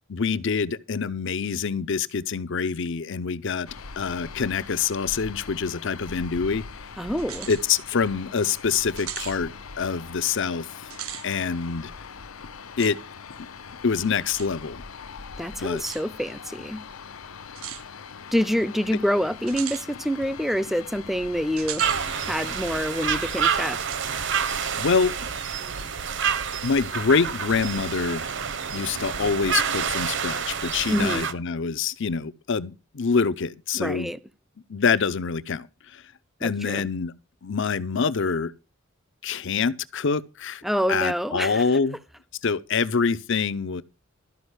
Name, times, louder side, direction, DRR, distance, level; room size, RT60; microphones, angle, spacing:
voice 1, 0.1-3.7 4.0-6.6 7.5-10.7 11.2-11.9 12.8-13.0 13.8-14.8 15.6-15.8 24.8-25.3 26.6-28.3 28.7-34.1 34.7-35.7 35.9-36.0 36.4-37.1 37.4-38.5 39.2-40.6 40.9-42.0 42.4-43.8, left 5 dB, 65° left, 0.7 m, -25 dB
sound 1, 3.7-23.5, left 5 dB, 85° left, 0.8 m, -42 dB
voice 2, 7.0-7.5 15.4-16.8 18.3-21.9 22.2-23.8 30.9-31.3 33.8-34.2 36.4-36.8 40.6-41.6, equal, ahead, 0.5 m, -26 dB
sound 2, 7.2-7.6 8.1-8.2 9.0-9.4 10.8-11.3 12.8-12.9 14.3-14.5 15.8-16.0 17.6-17.8 19.5-19.9 21.6-22.0 22.5-22.6 23.8-24.2, right 12 dB, 85° right, 0.8 m, -36 dB
sound 3, 21.8-31.3, right 7 dB, 60° right, 1.0 m, -28 dB
13.0 x 5.3 x 8.1 m
head